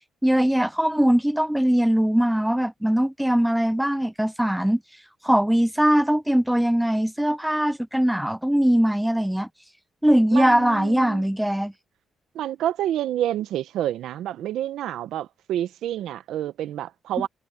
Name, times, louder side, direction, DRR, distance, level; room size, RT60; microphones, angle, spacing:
voice 1, 0.2-4.8 5.2-9.5 10.0-11.7, equal, 5° right, 0.5 m, -21 dB
voice 2, 10.3-11.2 12.3-17.3, right 12 dB, 80° right, 1.0 m, -28 dB
cardioid pair, 90°, 0 cm